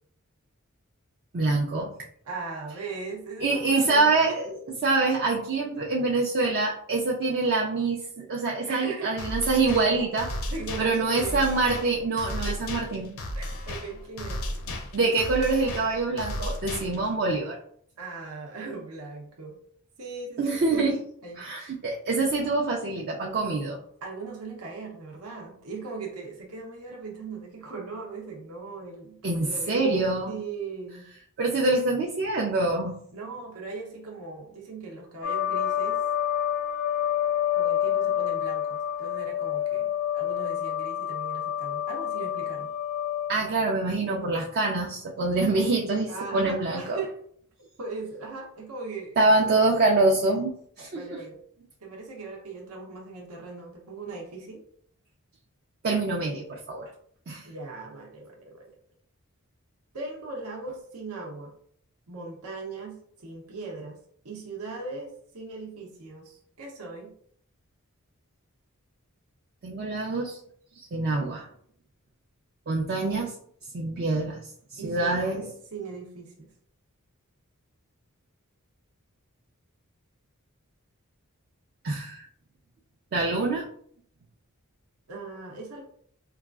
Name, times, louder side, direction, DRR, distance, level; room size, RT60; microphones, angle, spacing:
voice 1, 1.3-1.9 3.4-10.3 10.8-13.1 14.9-17.6 20.4-21.0 21.4-23.8 29.2-30.4 31.4-33.0 43.3-46.1 46.3-47.0 49.2-51.0 55.8-56.9 57.3-57.4 69.6-70.4 70.8-71.5 72.7-73.3 73.7-74.4 74.7-75.4 81.8-82.2 83.1-83.7, right 3 dB, 45° right, -1 dB, 0.4 m, -25 dB
voice 2, 2.2-4.4 8.7-9.2 10.5-11.5 12.4-12.6 13.3-14.4 18.0-19.6 20.0-20.9 21.2-21.5 24.0-30.0 30.3-31.1 33.1-36.0 37.6-42.7 45.4-45.7 46.1-47.2 47.8-49.7 50.9-51.4 51.8-54.6 57.4-58.6 59.9-61.5 62.1-64.0 64.2-67.1 74.8-76.5 85.1-85.8, right 4 dB, 85° right, -1 dB, 0.7 m, -39 dB
sound 1, 9.2-17.2, left 1 dB, 65° left, 0.6 m, -35 dB
sound 2, 35.2-43.3, left 10 dB, 90° left, 0.9 m, -28 dB
4.7 x 2.4 x 2.3 m, 0.63 s
head